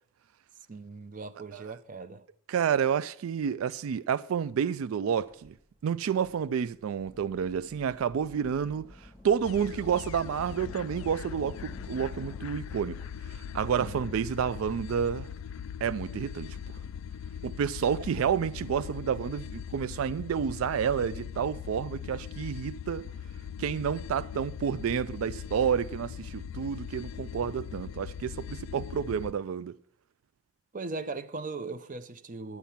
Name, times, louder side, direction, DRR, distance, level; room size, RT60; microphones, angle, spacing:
voice 1, 0.7-2.2 13.8-14.0 30.7-32.6, right 3 dB, 40° right, 0.5 m, -38 dB
voice 2, 2.5-5.5 5.8-8.8 9.2-13.0 13.5-15.3 15.8-16.6 17.4-23.1 23.6-29.8, right 7 dB, 90° right, 0.3 m, -30 dB
sound 1, 5.2-16.9, left 1 dB, 10° right, 1.5 m, -59 dB
sound 2, 7.0-12.4, left 1 dB, 5° left, 1.3 m, -52 dB
sound 3, 9.4-29.3, left 8 dB, 85° left, 0.3 m, -40 dB
10.5 x 8.2 x 5.6 m
head